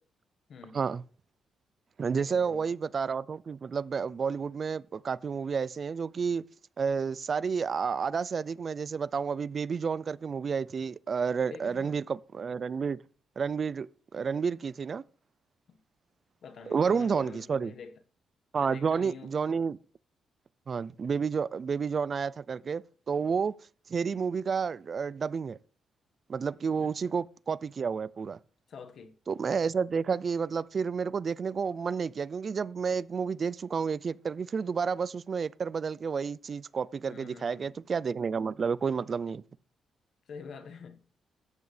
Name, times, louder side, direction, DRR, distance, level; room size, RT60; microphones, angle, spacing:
voice 1, 0.5-0.8 2.1-2.7 11.4-12.0 15.7-15.8 16.4-18.0 18.6-19.4 26.8-27.2 28.7-29.2 37.1-37.8 40.3-41.0, left 5 dB, 60° left, 1.4 m, -47 dB
voice 2, 2.0-6.4 6.8-13.0 13.4-13.9 14.1-15.0 16.7-17.7 18.5-19.8 20.7-23.5 23.9-25.6 26.3-28.4 29.3-39.4, right 6 dB, 45° right, 0.4 m, -30 dB
13.5 x 9.4 x 3.3 m
cardioid pair, 105°, 0 cm